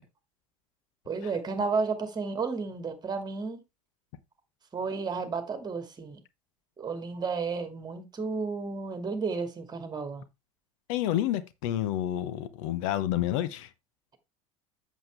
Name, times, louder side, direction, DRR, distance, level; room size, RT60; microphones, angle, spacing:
voice 1, 1.1-3.6 4.7-6.2 6.8-10.2, right 4 dB, 25° right, 2.2 m, -32 dB
voice 2, 10.9-13.7, left 12 dB, 65° left, 0.9 m, -29 dB
8.0 x 7.3 x 3.4 m
hypercardioid pair, 80°, 18 cm